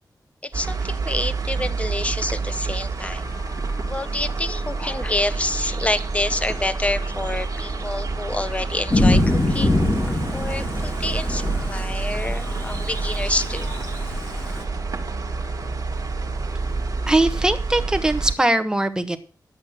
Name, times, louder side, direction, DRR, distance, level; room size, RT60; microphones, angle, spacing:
voice 1, 0.4-3.2 3.9-9.8 10.3-13.7, left 2 dB, 15° left, 13 dB, 0.8 m, -28 dB
sound 1, 0.5-18.3, right 4 dB, 50° right, 1.7 m, -28 dB
sound 2, 3.2-17.3, left 4 dB, 70° left, 4.2 m, -44 dB
Thunder / Rain, 8.9-14.6, left 1 dB, 35° left, 2.2 m, -24 dB
voice 2, 17.1-19.2, right 1 dB, 10° right, 8 dB, 1.3 m, -21 dB
11.5 x 8.5 x 6.5 m, 0.37 s
wide cardioid pair, 160°, 7 cm